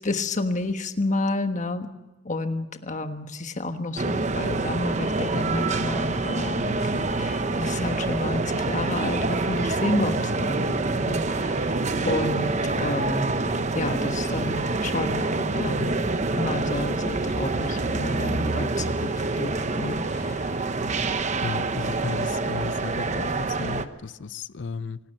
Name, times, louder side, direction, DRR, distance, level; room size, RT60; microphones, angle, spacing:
voice 1, 0.0-1.9 2.2-13.3 13.7-16.0 16.3-20.6, left 2 dB, 40° left, 1.4 m, -30 dB
sound 1, 4.0-23.8, right 3 dB, 40° right, 1.0 m, -26 dB
voice 2, 21.4-25.0, left 4 dB, 75° left, 0.6 m, -34 dB
25.0 x 12.0 x 9.1 m
head